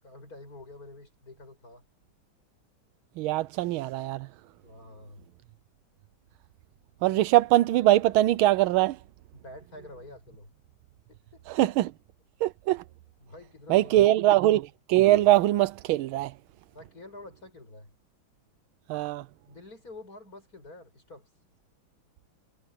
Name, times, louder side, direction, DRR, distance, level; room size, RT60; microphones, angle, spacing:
voice 1, 0.0-1.8 4.6-5.3 9.3-10.5 11.1-11.5 13.2-14.4 16.7-17.9 19.5-21.3, left 2 dB, 45° left, 7.9 m, -48 dB
voice 2, 3.2-4.3 7.0-9.0 11.5-11.9 12.4-12.8 13.7-16.3 18.9-19.2, right 15 dB, 85° right, 1.4 m, -22 dB
omnidirectional pair, 2.3 m